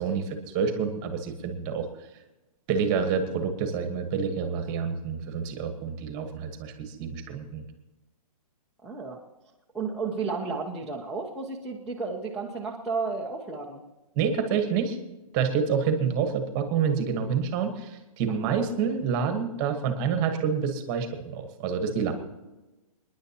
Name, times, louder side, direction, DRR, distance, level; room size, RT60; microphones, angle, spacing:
voice 1, 0.0-1.9 2.7-7.6 14.2-15.0 15.3-22.1, right 6 dB, 20° right, 7 dB, 1.2 m, -28 dB
voice 2, 8.8-9.2 9.7-13.8 18.4-18.6, right 4 dB, ahead, -1 dB, 0.6 m, -32 dB
27.0 x 10.5 x 2.9 m, 1.0 s
hypercardioid pair, 170°, 20 cm